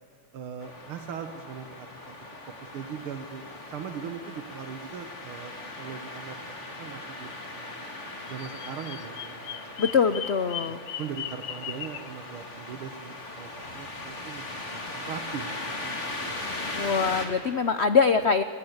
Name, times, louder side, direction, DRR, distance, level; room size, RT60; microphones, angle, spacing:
voice 1, 0.3-2.2 2.6-5.5 5.8-6.4 6.8-7.9 8.3-10.0 10.7-16.4, right 7 dB, 80° right, 7 dB, 2.1 m, -40 dB
sound 1, 0.6-17.3, left 2 dB, 35° left, 3.2 m, -39 dB
Bird vocalization bird call bird song, 8.3-12.1, left 10 dB, 60° left, 1.3 m, -38 dB
voice 2, 9.8-10.8 16.7-18.4, left 5 dB, 80° left, 11 dB, 0.5 m, -23 dB
29.5 x 21.0 x 8.1 m, 2.3 s
omnidirectional pair, 2.3 m